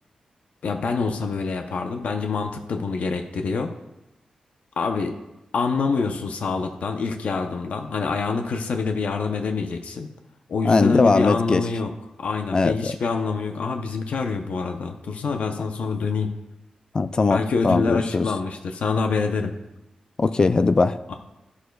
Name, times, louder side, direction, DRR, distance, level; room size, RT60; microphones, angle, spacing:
voice 1, 0.6-3.7 4.8-5.1 5.5-10.1 10.5-11.9 12.2-16.3 17.3-19.5 21.1-21.2, left 4 dB, 75° left, 4 dB, 0.7 m, -26 dB
voice 2, 10.6-11.6 12.5-13.0 16.9-18.3 20.2-21.0, left 3 dB, 35° left, 12 dB, 0.3 m, -20 dB
11.5 x 11.0 x 2.3 m, 0.94 s
wide cardioid pair, 125°, 2 cm